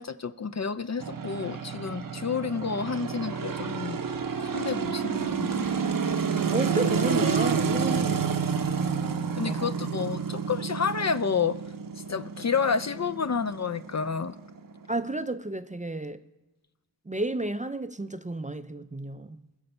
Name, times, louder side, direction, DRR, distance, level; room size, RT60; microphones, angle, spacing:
voice 1, 0.0-4.0 4.4-5.7 7.9-8.2 9.4-11.6 12.1-14.3, left 6 dB, 40° left, 0.4 m, -30 dB
sound 1, 1.0-15.2, right 6 dB, 50° right, 0.7 m, -30 dB
voice 2, 6.5-9.1 9.4-9.7 14.9-16.2 17.1-19.4, right 2 dB, 20° right, 0.4 m, -32 dB
20.0 x 6.7 x 5.4 m
wide cardioid pair, 45°, 44 cm